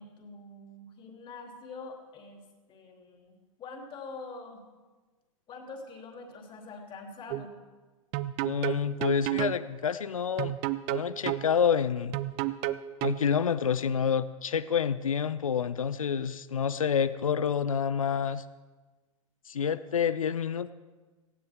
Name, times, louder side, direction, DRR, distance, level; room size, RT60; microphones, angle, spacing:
voice 1, 0.0-2.4 2.7-4.6 5.5-7.5, left 3 dB, 30° left, 2 dB, 3.0 m, -45 dB
sound 1, 7.3-7.5 8.1-9.6 10.4-11.5 12.1-13.2, right 16 dB, 40° right, 0.7 m, -30 dB
voice 2, 8.4-10.5 10.9-12.2 13.0-18.4 19.5-20.7, left 7 dB, 80° left, 16 dB, 0.6 m, -28 dB
18.0 x 15.5 x 3.6 m, 1.3 s
figure-of-eight pair, 100°, 17 cm